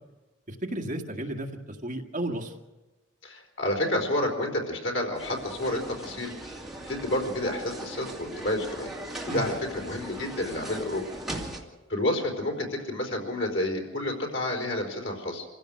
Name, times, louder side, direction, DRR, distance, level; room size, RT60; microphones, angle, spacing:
voice 1, 0.5-2.5 9.3-9.4, right 1 dB, 40° right, 2 dB, 1.9 m, -33 dB
voice 2, 3.2-6.3 6.8-8.9 9.2-11.0 11.9-15.5, left 1 dB, 70° left, 1 dB, 4.3 m, -29 dB
sound 1, 5.1-11.6, right 1 dB, ahead, 2.5 m, -39 dB
26.5 x 16.0 x 6.4 m, 1.2 s
head